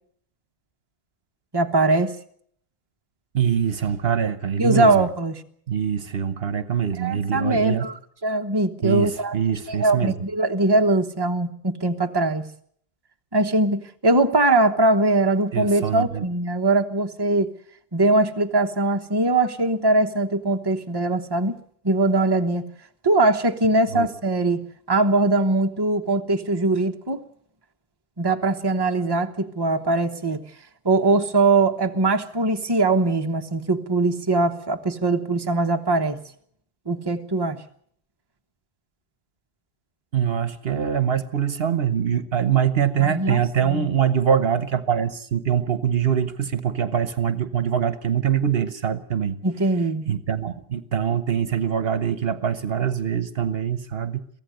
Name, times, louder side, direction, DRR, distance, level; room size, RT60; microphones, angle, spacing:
voice 1, 1.5-2.1 4.6-5.3 7.0-9.3 9.7-12.4 13.3-17.5 17.9-21.6 21.8-22.6 23.0-24.6 24.9-27.2 28.2-30.4 30.8-36.2 36.9-37.6 43.0-43.9 49.4-50.0, right 2 dB, 25° right, 5 dB, 1.2 m, -21 dB
voice 2, 3.3-5.1 5.7-7.9 8.8-10.2 15.5-16.3 23.9-24.1 40.1-49.4 50.1-54.2, right 8 dB, 65° right, 12 dB, 1.2 m, -23 dB
23.5 x 15.5 x 7.8 m, 0.65 s
omnidirectional pair, 1.1 m